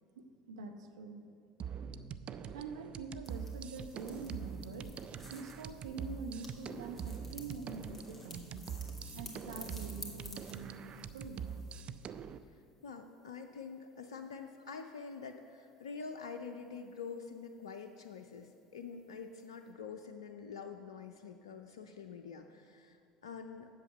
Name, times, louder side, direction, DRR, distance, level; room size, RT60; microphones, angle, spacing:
voice 1, 0.2-1.3 2.5-4.9 5.3-8.7 9.1-11.5, right 4 dB, 75° right, 5 dB, 0.8 m, -45 dB
sound 1, 1.6-12.4, right 7 dB, 40° right, 0.4 m, -44 dB
sound 2, 3.2-11.8, left 2 dB, 10° left, 2.2 m, -53 dB
voice 2, 12.8-23.7, left 5 dB, 75° left, 6 dB, 0.4 m, -46 dB
8.2 x 7.3 x 6.4 m, 2.3 s
figure-of-eight pair, 70°, 3 cm